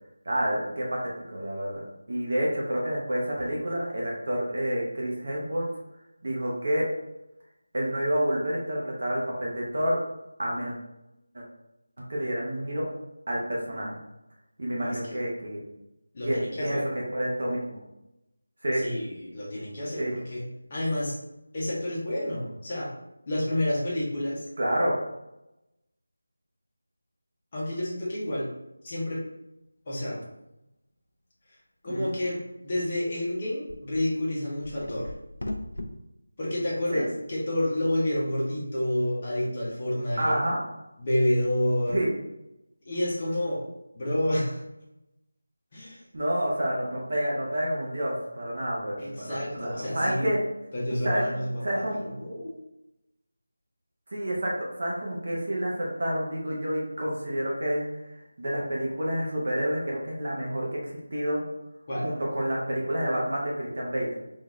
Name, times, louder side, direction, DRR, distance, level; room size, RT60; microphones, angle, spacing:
voice 1, 0.3-1.0 1.3-5.6 6.2-6.9 7.7-10.0 10.4-10.7 11.3-11.4 12.1-12.8 13.3-13.9 14.6-15.6 16.2-17.8 18.6-18.8 20.0-20.1 24.6-24.9 31.9-32.1 36.9-37.0 40.2-40.6 41.9-42.1 46.1-50.4 51.0-51.2 51.6-52.0 54.1-54.5 54.8-57.8 58.4-61.4 62.0-64.1, equal, 40° right, -3 dB, 0.7 m, -29 dB
voice 2, 14.8-15.2 16.1-16.9 18.8-20.4 20.7-21.1 21.5-22.9 23.3-24.4 27.5-28.5 28.8-29.2 29.9-30.2 31.8-35.1 36.4-40.4 41.0-42.0 42.9-43.6 44.0-44.6 45.7-46.0 49.0-50.3 50.7-52.6 61.9-62.1, left 1 dB, 20° left, -6 dB, 0.6 m, -29 dB
sound 1, 30.2-30.3 33.7-34.0 34.5-35.9, left 1 dB, 55° left, 0.4 m, -36 dB
3.6 x 2.3 x 3.0 m, 0.91 s
figure-of-eight pair, 180°, 0 cm